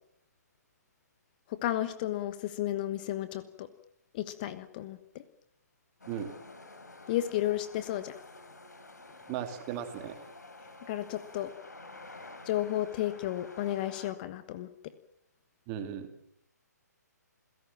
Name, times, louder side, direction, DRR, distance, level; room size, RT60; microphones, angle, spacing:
voice 1, 1.5-3.7 4.1-5.2 7.1-8.2 10.9-11.5 12.5-14.7, left 13 dB, 30° left, 12 dB, 1.2 m, -33 dB
sound 1, 6.0-14.1, left 2 dB, 70° left, 4.4 m, -50 dB
voice 2, 9.3-10.3 15.7-16.1, right 9 dB, 25° right, 7 dB, 2.8 m, -36 dB
28.5 x 17.0 x 7.5 m, 0.72 s
figure-of-eight pair, 130°, 10 cm